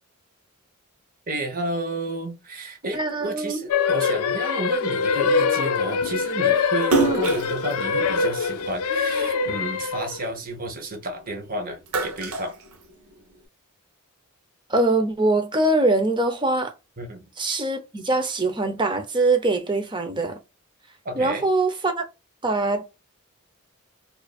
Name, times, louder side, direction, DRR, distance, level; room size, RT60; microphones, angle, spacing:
voice 1, 1.3-12.6 17.0-17.3 21.0-21.4, right 1 dB, 40° right, 1.1 m, -31 dB
voice 2, 2.9-3.6 7.0-7.2 14.7-16.7 17.4-20.4 21.2-22.0 22.4-22.8, right 2 dB, 20° right, 0.7 m, -23 dB
sound 1, 3.7-10.3, left 5 dB, 90° left, 0.5 m, -23 dB
Splash splatter, 6.8-9.4 9.8-11.3 11.6-13.4, right 4 dB, 75° right, 0.8 m, -28 dB
4.6 x 2.6 x 2.4 m
head